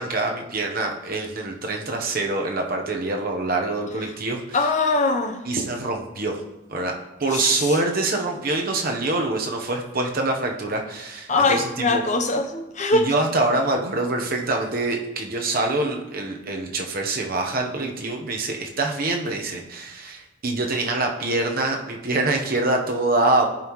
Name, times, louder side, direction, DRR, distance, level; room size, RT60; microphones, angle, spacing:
voice 1, 0.0-4.6 5.4-6.4 6.7-12.0 12.9-23.5, right 2 dB, 45° right, 2 dB, 1.0 m, -25 dB
voice 2, 4.5-5.4 7.3-7.7 11.3-13.1, left 3 dB, 35° left, 5 dB, 0.8 m, -22 dB
14.5 x 5.5 x 3.1 m, 0.94 s
head